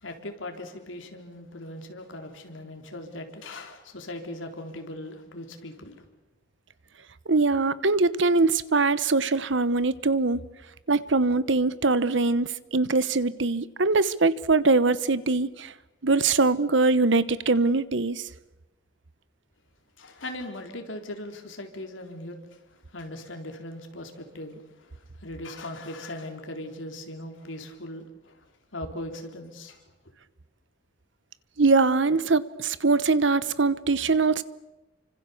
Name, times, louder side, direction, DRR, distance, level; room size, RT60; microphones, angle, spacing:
voice 1, 0.0-6.1 20.0-22.4 22.7-28.5 28.7-29.8, left 1 dB, 80° left, 3.9 m, -39 dB
voice 2, 7.3-10.4 10.9-15.7 16.0-18.3 31.6-34.4, right 3 dB, 70° right, 1.1 m, -22 dB
29.5 x 25.5 x 7.1 m
head